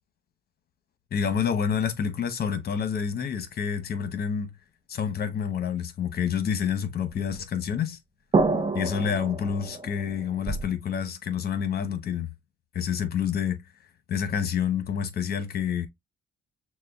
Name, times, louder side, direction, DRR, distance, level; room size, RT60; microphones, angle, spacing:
voice 1, 1.1-4.5 4.9-8.0 8.7-12.3 12.7-13.6 14.1-15.9, left 7 dB, 50° left, 0.9 m, -28 dB
sound 1, 7.1-7.2 8.3-10.7, right 3 dB, 25° right, 0.7 m, -28 dB
6.3 x 2.1 x 2.3 m
cardioid pair, 90°, 20 cm